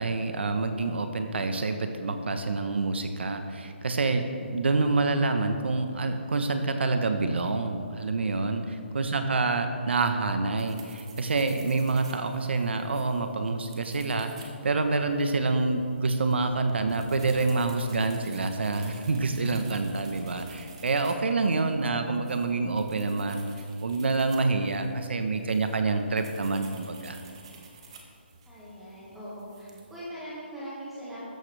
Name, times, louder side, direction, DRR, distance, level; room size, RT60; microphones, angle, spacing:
voice 1, 0.0-23.5 23.8-27.2, right 3 dB, 65° right, 7 dB, 1.0 m, -27 dB
sound 1, 10.6-30.1, right 3 dB, 25° right, 1.3 m, -50 dB
voice 2, 28.5-31.3, equal, 5° right, -9 dB, 1.7 m, -42 dB
15.0 x 13.5 x 3.4 m, 2.4 s
hypercardioid pair, 175°, 6 cm